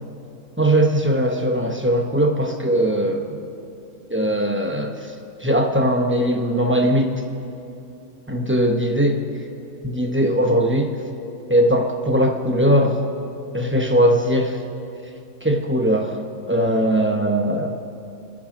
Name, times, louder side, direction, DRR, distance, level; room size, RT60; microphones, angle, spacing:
voice 1, 0.6-3.4 4.1-5.1 5.4-7.2 8.3-9.2 9.8-10.9 11.5-13.0 13.5-14.6 15.4-16.2 16.5-17.8, equal, 10° right, 3 dB, 0.6 m, -20 dB
23.0 x 8.8 x 5.1 m, 2.7 s
omnidirectional pair, 1.7 m